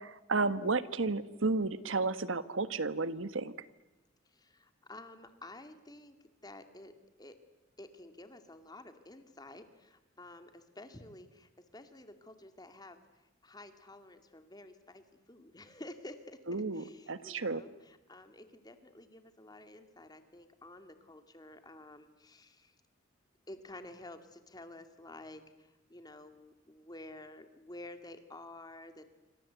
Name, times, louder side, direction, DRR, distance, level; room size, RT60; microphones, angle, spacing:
voice 1, 0.0-3.5 16.5-17.6, right 3 dB, 80° right, 14 dB, 1.4 m, -32 dB
voice 2, 4.3-6.2 6.4-7.4 7.8-13.0 13.4-22.7 23.5-29.1, left 1 dB, 20° left, 8 dB, 2.3 m, -51 dB
27.5 x 26.0 x 8.2 m, 1.0 s
head